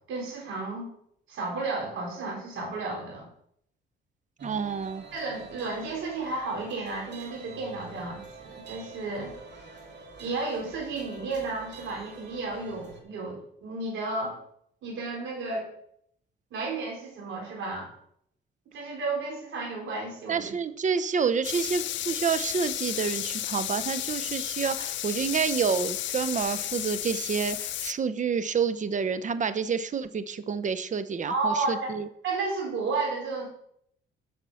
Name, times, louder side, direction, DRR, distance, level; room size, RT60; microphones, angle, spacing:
voice 1, 0.1-0.9 1.3-3.3 5.1-9.3 10.2-14.4 14.8-15.7 16.5-17.9 18.7-20.5 31.3-32.0 32.2-33.5, right 3 dB, 75° right, -2 dB, 4.7 m, -32 dB
voice 2, 4.4-5.0 20.3-32.1, right 6 dB, 40° right, 12 dB, 0.8 m, -28 dB
sound 1, 4.4-13.0, right 4 dB, 60° right, 2.3 m, -46 dB
sound 2, 21.4-27.9, left 14 dB, 70° left, 0.4 m, -33 dB
9.3 x 6.1 x 5.7 m, 0.70 s
cardioid pair, 90°, 20 cm